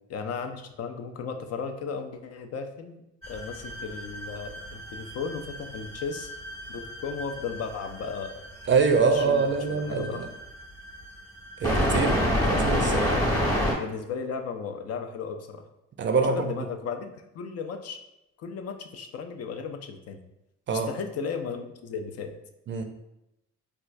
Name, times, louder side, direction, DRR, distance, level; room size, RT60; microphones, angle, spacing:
voice 1, 0.1-6.3 6.7-8.4 9.1-10.2 13.8-15.6 16.3-17.1 17.3-18.0 18.4-20.2 20.7-22.3, left 5 dB, 55° left, 6 dB, 0.4 m, -35 dB
sound 1, 3.2-13.7, equal, 10° left, 1.0 m, -29 dB
voice 2, 8.7-10.3 11.6-12.2 12.5-13.2 16.0-16.5 20.7-20.9 22.7-22.8, right 5 dB, 40° right, 6 dB, 0.4 m, -24 dB
4.3 x 2.3 x 2.5 m, 0.87 s
cardioid pair, 90°, 30 cm